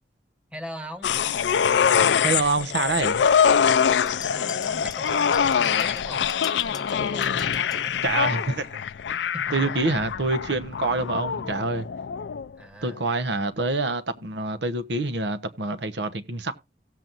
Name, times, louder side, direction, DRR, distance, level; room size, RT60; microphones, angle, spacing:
voice 1, 0.5-1.1 4.2-6.3 6.7-8.0 9.2-9.9 12.6-13.0, equal, 5° right, 1.5 m, -40 dB
sound 1, 1.0-12.5 12.9-13.0, left 7 dB, 90° left, 0.4 m, -24 dB
voice 2, 2.2-3.3 8.0-8.8 9.5-11.9 12.8-16.5, right 3 dB, 85° right, 1.0 m, -26 dB
sound 2, 4.1-7.9, left 6 dB, 20° left, 0.8 m, -43 dB
17.5 x 7.6 x 2.6 m
head